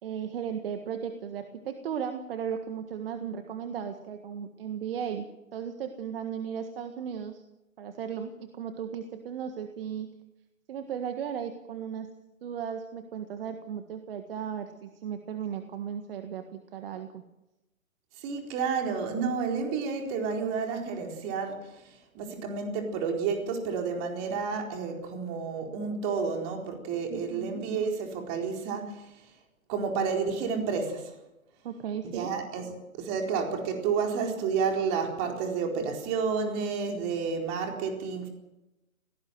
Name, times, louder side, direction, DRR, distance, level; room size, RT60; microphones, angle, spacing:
voice 1, 0.0-7.4 7.8-10.1 10.7-12.1 12.4-17.2 27.1-27.6 31.6-32.3, right 8 dB, 45° right, 7 dB, 1.7 m, -36 dB
voice 2, 18.2-29.3 29.7-31.2 32.0-38.3, right 5 dB, 30° right, 2 dB, 4.3 m, -31 dB
21.5 x 18.5 x 7.7 m, 0.96 s
figure-of-eight pair, 130°, 40 cm